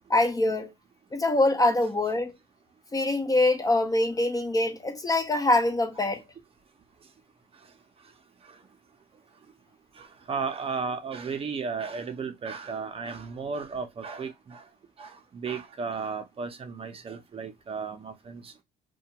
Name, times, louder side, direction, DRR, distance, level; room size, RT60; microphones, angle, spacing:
voice 1, 0.1-0.7 1.1-2.3 2.9-6.2, left 2 dB, 20° left, 0.4 m, -24 dB
voice 2, 10.0-14.6 15.0-18.6, right 5 dB, 35° right, 0.6 m, -34 dB
2.3 x 2.2 x 2.8 m
cardioid pair, 110°, 17 cm